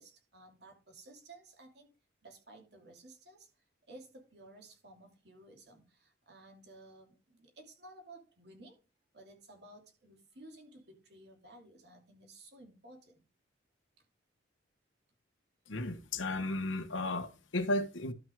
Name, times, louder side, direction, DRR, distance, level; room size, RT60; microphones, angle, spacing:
voice 1, 0.0-1.9 2.2-3.5 3.9-8.8 9.1-13.2, right 2 dB, 60° right, 2.8 m, -55 dB
voice 2, 15.7-18.1, left 2 dB, 90° left, 1.3 m, -34 dB
12.0 x 6.2 x 3.6 m
head